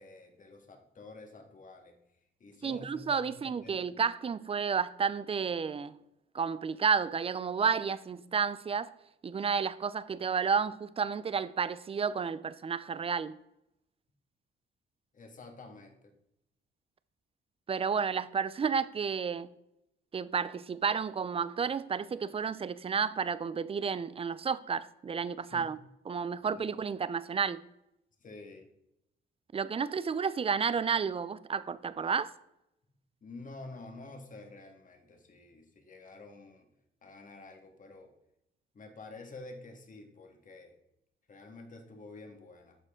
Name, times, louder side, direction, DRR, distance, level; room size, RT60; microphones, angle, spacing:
voice 1, 0.0-2.0 2.4-3.8 15.1-16.1 25.4-25.6 26.6-26.7 28.2-28.7 33.2-36.7 37.0-38.1 38.7-40.8 41.3-42.8, left 2 dB, 40° left, 1.9 m, -49 dB
voice 2, 2.6-6.0 6.3-8.9 9.2-13.3 17.7-19.5 20.1-25.8 26.1-27.6 29.5-32.3, right 6 dB, 30° right, 0.5 m, -31 dB
11.0 x 6.7 x 3.8 m
cardioid pair, 90°, 20 cm